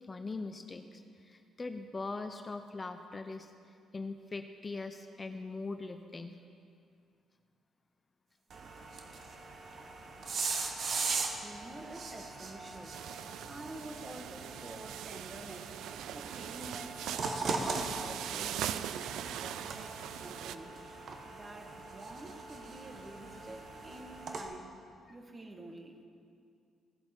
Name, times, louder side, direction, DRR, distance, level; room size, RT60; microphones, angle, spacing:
voice 1, 0.1-3.5 3.9-6.4, left 3 dB, 30° left, 7 dB, 0.5 m, -41 dB
sound 1, 8.5-24.4, right 4 dB, 55° right, 1.1 m, -40 dB
voice 2, 11.3-13.2 13.5-15.7 16.1-20.8 21.3-24.7 25.1-26.0, right 2 dB, 25° right, 4 dB, 1.4 m, -48 dB
sound 2, 12.9-20.6, right 10 dB, 85° right, 0.3 m, -41 dB
16.0 x 7.1 x 4.4 m, 2.4 s
cardioid pair, 90°, 0 cm